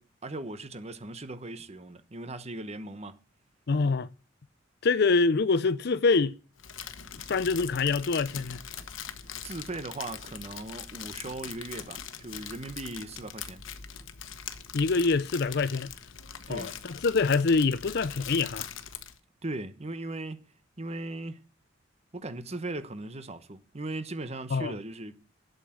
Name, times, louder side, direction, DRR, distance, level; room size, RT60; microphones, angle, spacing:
voice 1, 0.0-3.2 9.4-13.6 16.5-16.7 19.4-20.4 20.8-21.4 22.1-25.3, right 2 dB, 35° right, 1.0 m, -38 dB
voice 2, 3.7-4.1 4.8-6.4 7.3-8.6 14.7-15.9 16.5-18.7 24.5-24.7, left 4 dB, 55° left, 0.5 m, -25 dB
Crumpling crinkling, 6.6-19.2, left 8 dB, 80° left, 1.1 m, -42 dB
8.2 x 8.0 x 8.9 m
head